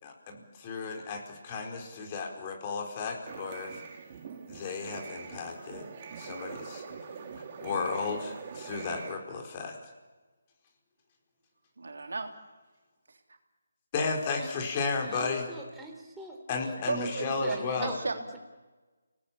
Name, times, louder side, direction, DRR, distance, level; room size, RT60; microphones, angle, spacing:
voice 1, 0.0-3.8 4.5-6.8 7.6-9.8 13.9-15.5 16.5-17.9, left 4 dB, 30° left, 2 dB, 4.5 m, -34 dB
sound 1, 3.3-9.2, right 6 dB, 35° right, 3.1 m, -43 dB
voice 2, 11.8-12.3 16.9-18.4, right 3 dB, 75° right, 5 dB, 3.3 m, -34 dB
voice 3, 15.1-18.4, right 1 dB, 5° right, 0 dB, 3.7 m, -43 dB
29.0 x 18.5 x 8.7 m, 1.3 s
figure-of-eight pair, 155°, 0 cm